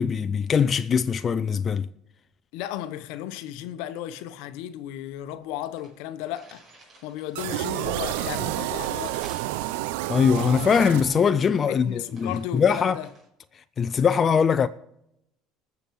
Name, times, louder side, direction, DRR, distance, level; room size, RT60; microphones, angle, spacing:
voice 1, 0.0-1.9 10.1-13.0 13.8-14.7, left 6 dB, 35° left, 0.5 m, -22 dB
voice 2, 2.5-6.6 7.0-9.3 11.7-13.1, left 12 dB, 75° left, 0.9 m, -35 dB
sound 1, 5.1-5.2 5.4-5.5 5.8-13.3, right 2 dB, 35° right, 5.5 m, -53 dB
sound 2, 7.3-11.6, right 16 dB, 85° right, 0.5 m, -30 dB
20.0 x 6.9 x 4.7 m
supercardioid pair, 95°, 0 cm